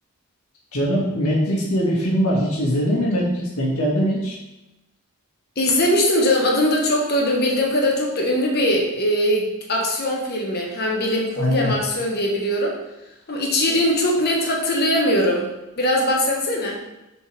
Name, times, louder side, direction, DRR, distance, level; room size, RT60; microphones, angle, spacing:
voice 1, 0.7-4.4 11.4-11.7, equal, 85° left, -3 dB, 1.9 m, -21 dB
voice 2, 5.6-12.8 13.3-15.5 15.8-16.8, left 1 dB, 45° left, -1 dB, 1.2 m, -21 dB
6.6 x 4.6 x 3.4 m, 0.97 s
head